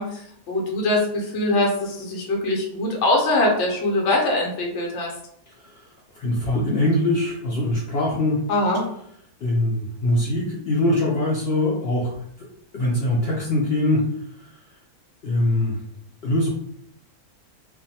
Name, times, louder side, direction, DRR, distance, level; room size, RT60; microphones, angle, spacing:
voice 1, 0.0-5.1 8.5-8.9, left 2 dB, 55° left, -1 dB, 1.0 m, -22 dB
voice 2, 6.2-8.4 9.4-12.1 12.7-14.0 15.2-15.7 16.2-16.5, left 1 dB, 80° left, -4 dB, 0.5 m, -22 dB
2.5 x 2.2 x 2.7 m, 0.68 s
omnidirectional pair, 1.6 m